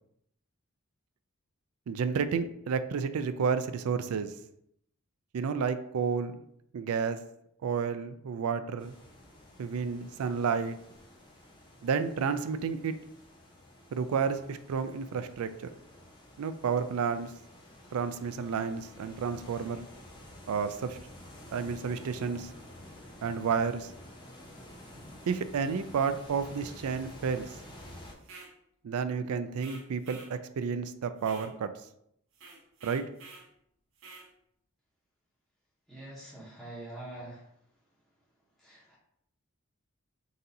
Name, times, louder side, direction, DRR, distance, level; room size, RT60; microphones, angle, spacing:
voice 1, 1.9-4.3 5.3-6.4 6.7-7.2 7.6-8.9 9.6-10.8 11.8-13.0 13.9-15.7 16.4-17.3 17.9-19.8 20.5-21.0 21.5-22.5 23.2-23.9 25.3-27.5 28.8-31.7 32.8-33.0, right 6 dB, 80° right, 11 dB, 0.4 m, -31 dB
sound 1, 8.8-28.1, left 1 dB, 20° left, 0.7 m, -51 dB
sound 2, 28.2-28.5 29.6-30.3 31.2-31.5 32.3-33.5 34.0-34.3, right 3 dB, 65° right, 0.9 m, -50 dB
voice 2, 35.9-37.5 38.6-39.0, right 1 dB, ahead, -9 dB, 1.0 m, -44 dB
4.0 x 2.6 x 4.0 m, 0.73 s
head